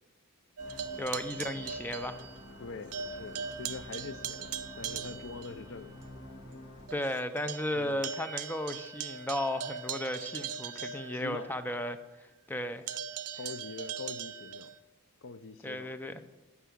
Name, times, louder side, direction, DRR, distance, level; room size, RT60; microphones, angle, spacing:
sound 1, 0.6-6.9, left 1 dB, 80° left, 2.0 m, -49 dB
sound 2, 0.6-2.6 2.9-5.6 6.0-6.1 6.5-6.6 6.9-11.7 12.9-14.8, right 7 dB, 80° right, 0.6 m, -40 dB
voice 1, 1.0-2.3 6.9-12.0 12.5-12.9 15.6-16.2, left 1 dB, 10° left, 0.6 m, -35 dB
voice 2, 2.6-6.0 7.7-8.0 10.7-11.5 13.4-14.7 15.2-16.0, left 4 dB, 60° left, 0.6 m, -44 dB
9.4 x 6.1 x 8.3 m
head